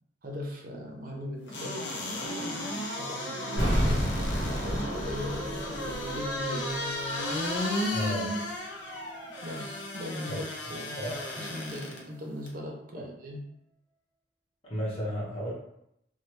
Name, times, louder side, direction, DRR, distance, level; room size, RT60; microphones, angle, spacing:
voice 1, 0.2-4.0 4.4-6.8 9.4-10.4 10.7-11.0 11.4-13.4, left 1 dB, 45° right, 1 dB, 0.6 m, -39 dB
sound 1, 1.5-12.0 12.5-12.6, left 1 dB, 65° left, 0.7 m, -34 dB
sound 2, 2.2-12.7, right 4 dB, ahead, 1.0 m, -50 dB
sound 3, 3.6-6.5 6.7-6.8, equal, 80° left, 1.3 m, -30 dB
voice 2, 7.9-8.4 10.3-10.4 11.0-11.2 13.0-13.1 14.6-15.5, equal, 30° left, -6 dB, 1.0 m, -33 dB
3.2 x 2.1 x 3.0 m, 0.77 s
head